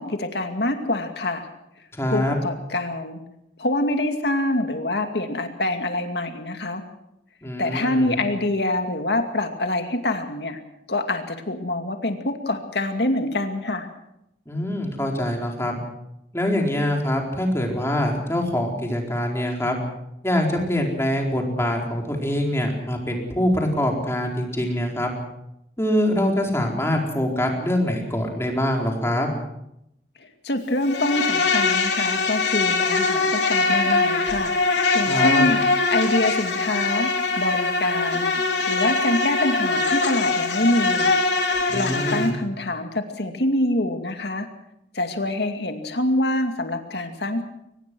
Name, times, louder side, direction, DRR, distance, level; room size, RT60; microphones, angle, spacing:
voice 1, 0.0-1.5 2.1-3.2 3.6-6.8 7.6-10.6 10.9-13.9 30.2-34.5 34.9-35.6 35.9-37.1 37.4-38.3 38.7-41.1 41.7-44.5 44.9-47.4, left 1 dB, 65° left, 5 dB, 2.4 m, -25 dB
voice 2, 2.0-2.4 7.4-8.2 14.5-15.8 16.3-19.8 20.2-25.1 25.8-29.3 35.1-35.4 41.7-42.3, left 1 dB, 15° left, 1 dB, 4.3 m, -24 dB
Insect, 30.8-42.3, left 3 dB, 80° left, 3.5 m, -22 dB
23.5 x 20.0 x 6.3 m, 0.81 s
head